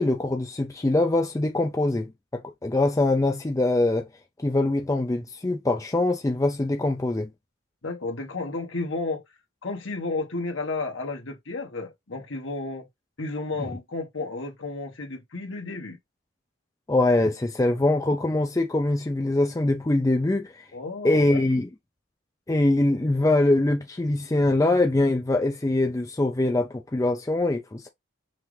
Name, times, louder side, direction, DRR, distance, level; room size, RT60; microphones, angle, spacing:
voice 1, 0.0-4.1 4.4-7.3 16.9-20.6 21.0-21.7 22.5-27.9, left 2 dB, 15° left, 0.4 m, -23 dB
voice 2, 7.8-9.2 9.6-12.9 13.2-16.0 20.7-21.4, left 3 dB, 65° left, 1.2 m, -32 dB
5.7 x 2.5 x 3.2 m
head